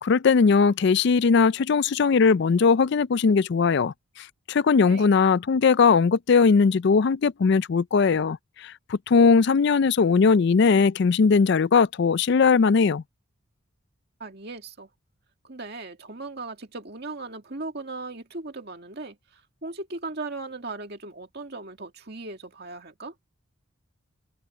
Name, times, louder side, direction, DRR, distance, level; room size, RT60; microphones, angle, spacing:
voice 1, 0.0-3.9 4.5-13.0, left 5 dB, 55° left, 0.4 m, -19 dB
voice 2, 14.2-14.9 15.4-23.1, right 3 dB, 50° right, 2.3 m, -38 dB
head